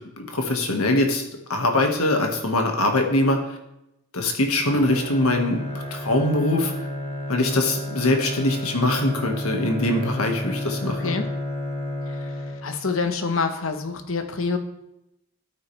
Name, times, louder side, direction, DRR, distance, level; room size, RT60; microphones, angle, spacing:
voice 1, 0.2-1.2 1.5-3.4 4.1-5.6 5.9-6.7 7.3-11.2, left 1 dB, 90° left, 3 dB, 1.8 m, -22 dB
Bowed string instrument, 4.6-13.0, left 1 dB, 30° left, 1.4 m, -31 dB
voice 2, 12.6-14.6, left 4 dB, 70° left, 7 dB, 1.1 m, -26 dB
12.5 x 8.9 x 3.4 m, 0.86 s
head